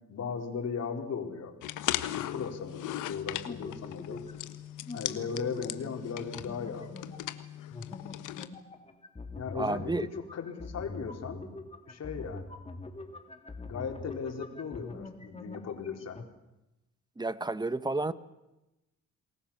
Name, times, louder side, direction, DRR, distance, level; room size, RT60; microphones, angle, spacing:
voice 1, 0.1-1.5 2.1-4.2 4.9-7.1 9.4-9.9 10.3-11.5 11.9-12.5 13.6-16.2, left 6 dB, 60° left, 4 dB, 4.5 m, -37 dB
sound 1, 1.6-8.5, left 13 dB, 90° left, 1.4 m, -38 dB
sound 2, 3.4-4.6 4.8-6.0 6.3-16.2, left 3 dB, 20° left, 2.6 m, -44 dB
voice 2, 9.5-10.1 17.2-18.1, right 2 dB, 15° right, 14 dB, 1.3 m, -31 dB
28.5 x 20.5 x 7.3 m, 0.97 s
cardioid pair, 90°, 30 cm